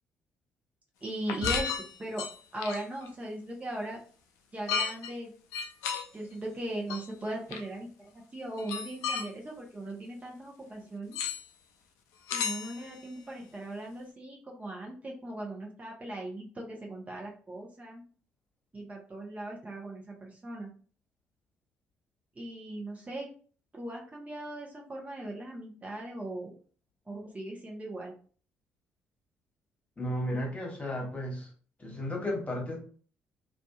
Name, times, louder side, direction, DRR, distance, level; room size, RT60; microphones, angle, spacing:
voice 1, 1.0-2.3 2.5-4.0 4.5-5.3 6.1-11.2 12.3-18.0 18.7-20.7 22.4-23.3 23.7-26.5 27.1-28.1, right 1 dB, 25° right, -2 dB, 0.8 m, -39 dB
sound 1, 1.3-3.1 4.7-5.1 5.5-6.1 6.9-7.0 7.5-7.6 8.6-9.3 11.1-11.4 12.3-13.0, left 6 dB, 70° left, 0.4 m, -33 dB
voice 2, 30.0-31.5 31.8-32.8, left 1 dB, 25° left, -1 dB, 1.2 m, -33 dB
2.5 x 2.4 x 2.3 m, 0.41 s
hypercardioid pair, 45°, 6 cm